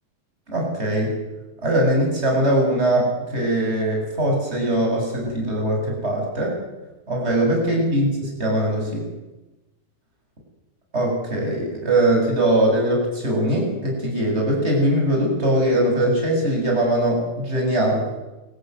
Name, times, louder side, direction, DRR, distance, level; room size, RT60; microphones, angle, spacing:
voice 1, 0.5-1.2 1.6-6.5 7.1-9.1 10.9-18.1, right 1 dB, 15° right, -1 dB, 8.3 m, -21 dB
29.5 x 14.5 x 9.7 m, 1.1 s
omnidirectional pair, 4.5 m